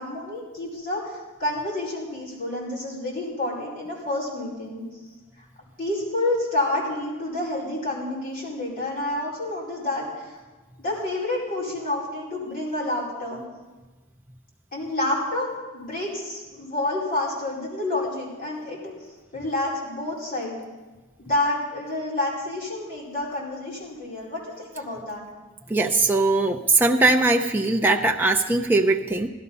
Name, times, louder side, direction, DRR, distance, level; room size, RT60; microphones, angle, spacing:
voice 1, 0.0-4.8 5.8-10.4 10.8-13.4 14.7-18.9 19.3-20.6 21.2-25.2, left 2 dB, 40° left, -6 dB, 4.8 m, -29 dB
voice 2, 25.7-29.3, right 2 dB, 10° right, 2 dB, 0.6 m, -20 dB
16.0 x 12.5 x 5.5 m, 1.2 s
head